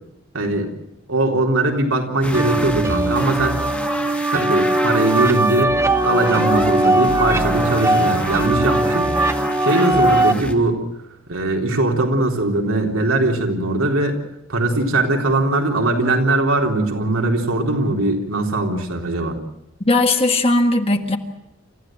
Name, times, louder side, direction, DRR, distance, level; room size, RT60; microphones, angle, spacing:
voice 1, 0.3-0.7 1.1-3.6 4.0-5.8 6.0-9.1 9.6-10.8 11.3-14.2 14.5-19.4, right 2 dB, 85° right, 1 dB, 3.9 m, -20 dB
sound 1, 2.2-10.6, left 1 dB, 5° left, 1.8 m, -28 dB
sound 2, 2.3-10.3, right 2 dB, 15° right, 0.9 m, -20 dB
voice 2, 19.9-21.2, left 2 dB, 30° left, 5 dB, 1.7 m, -17 dB
28.0 x 14.5 x 7.8 m, 0.86 s
head